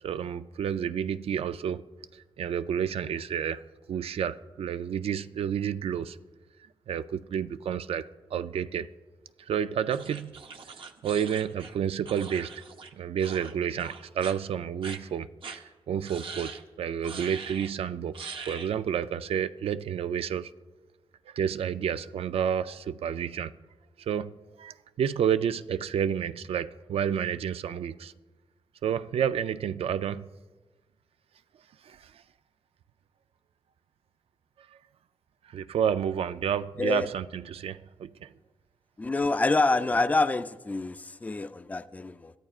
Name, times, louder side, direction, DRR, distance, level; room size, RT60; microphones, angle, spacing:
voice 1, 0.0-1.8 2.1-6.2 6.9-8.9 9.4-10.4 11.0-12.5 12.9-20.5 21.3-23.5 24.0-28.1 28.8-30.3 31.8-32.1 35.5-38.3, right 8 dB, 85° right, 0.4 m, -30 dB
sound 1, 9.9-12.9 13.2-13.5 13.8-14.3 14.8-15.0 15.4-15.6 16.0-16.6 17.0-17.7 18.1-18.7, right 5 dB, 65° right, 0.8 m, -42 dB
voice 2, 36.8-37.1 39.0-42.3, left 3 dB, 15° left, 0.4 m, -27 dB
22.0 x 14.0 x 2.4 m
wide cardioid pair, 145°, 10 cm